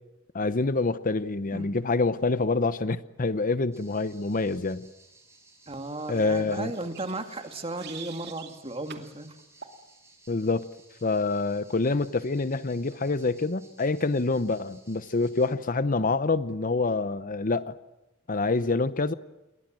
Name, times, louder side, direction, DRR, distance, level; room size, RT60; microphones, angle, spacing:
voice 1, 0.3-4.9 6.1-6.7 10.3-10.7 11.0-17.8 18.3-19.1, left 3 dB, 45° left, 14 dB, 0.8 m, -26 dB
sound 1, 3.7-15.5, right 2 dB, 15° right, 6.4 m, -58 dB
voice 2, 5.7-9.4, right 2 dB, 30° right, 6 dB, 2.4 m, -35 dB
sound 2, 6.7-8.6 8.9-9.1 9.6-9.8, right 8 dB, 55° right, 2.6 m, -45 dB
28.5 x 22.0 x 7.6 m, 0.96 s
head